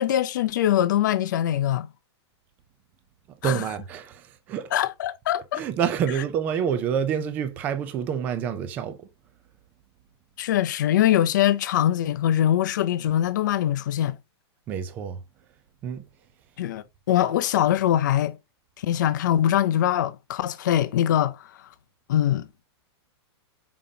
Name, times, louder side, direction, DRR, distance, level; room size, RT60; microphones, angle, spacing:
voice 1, 0.0-1.9 3.4-3.6 4.7-5.6 10.4-14.2 16.6-18.4 18.8-21.4 22.1-22.5, left 11 dB, 45° left, 0.5 m, -23 dB
voice 2, 3.4-4.7 5.5-9.0 14.7-15.2 15.8-16.0, right 8 dB, 10° right, 0.4 m, -27 dB
6.8 x 5.1 x 2.7 m
supercardioid pair, 180°, 14 cm